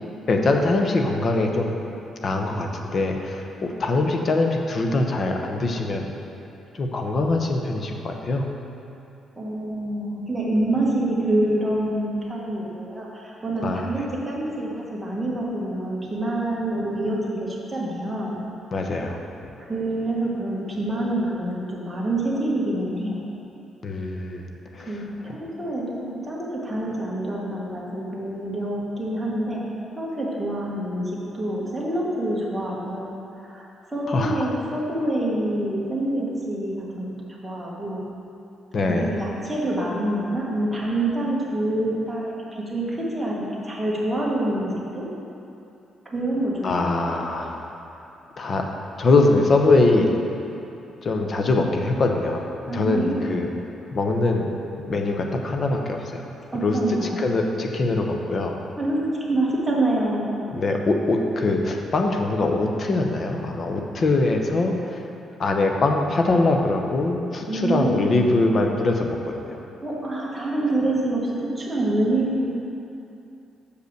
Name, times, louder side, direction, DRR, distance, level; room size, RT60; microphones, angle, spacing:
voice 1, 0.3-1.8 2.2-6.1 6.7-8.5 13.6-14.1 18.7-19.2 23.8-24.5 24.7-25.1 34.1-34.5 38.7-39.1 46.6-47.7 48.4-48.7 49.0-50.2 51.0-52.5 52.7-53.5 53.9-54.5 54.9-56.3 56.6-58.6 60.5-65.0 65.4-69.6, left 2 dB, 35° left, 2 dB, 0.7 m, -23 dB
voice 2, 9.4-18.4 19.6-23.2 24.8-29.6 30.0-37.1 37.4-38.0 38.9-45.0 46.1-47.0 52.7-53.5 56.5-57.3 58.8-60.5 67.5-68.4 69.8-72.5, right 1 dB, 10° right, -5 dB, 1.5 m, -26 dB
6.6 x 5.3 x 6.6 m, 2.8 s
cardioid pair, 145°, 0 cm